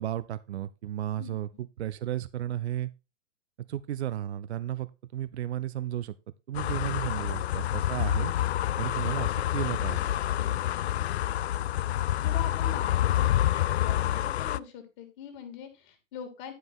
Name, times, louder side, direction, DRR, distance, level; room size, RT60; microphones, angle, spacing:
voice 1, 0.0-2.9 3.7-6.1 6.5-8.3 8.8-10.0, right 12 dB, 60° right, 0.7 m, -33 dB
sound 1, 6.5-14.6, left 12 dB, 60° left, 0.5 m, -28 dB
voice 2, 7.1-7.5 10.3-10.9 12.2-16.5, left 8 dB, 40° left, 2.9 m, -43 dB
11.5 x 5.4 x 4.7 m
figure-of-eight pair, 110°, 37 cm